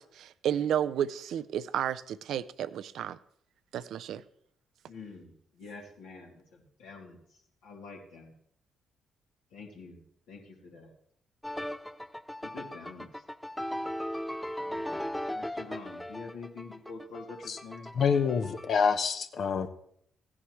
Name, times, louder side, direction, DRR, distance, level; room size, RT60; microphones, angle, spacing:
voice 1, 0.0-3.2 3.7-4.2, right 9 dB, 65° right, 0.4 m, -32 dB
voice 2, 4.9-8.4 9.5-10.9 12.4-13.2 14.6-17.9, left 4 dB, 75° left, 2.4 m, -47 dB
sound 1, 11.4-18.7, equal, 5° left, 0.5 m, -38 dB
voice 3, 17.9-19.7, left 6 dB, 60° left, 0.8 m, -27 dB
15.0 x 9.8 x 3.1 m
hypercardioid pair, 45°, 0 cm